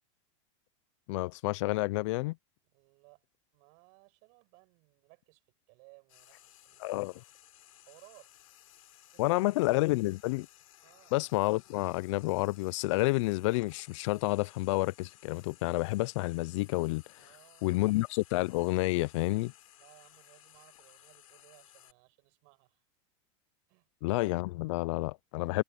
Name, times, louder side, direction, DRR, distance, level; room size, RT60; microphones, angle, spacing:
voice 1, 1.1-2.4 6.8-7.1 9.2-10.5 11.1-17.0 17.6-19.5 24.0-25.6, left 21 dB, 65° left, 0.4 m, -29 dB
voice 2, 2.7-3.2 3.5-5.4 5.7-7.0 7.8-8.3 9.1-9.4 10.8-11.1 17.2-17.9 19.8-22.8 23.7-23.9, right 33 dB, 55° right, 5.8 m, -61 dB
Frying (food), 6.1-21.9, left 13 dB, 90° left, 5.2 m, -59 dB
supercardioid pair, 140°, 17 cm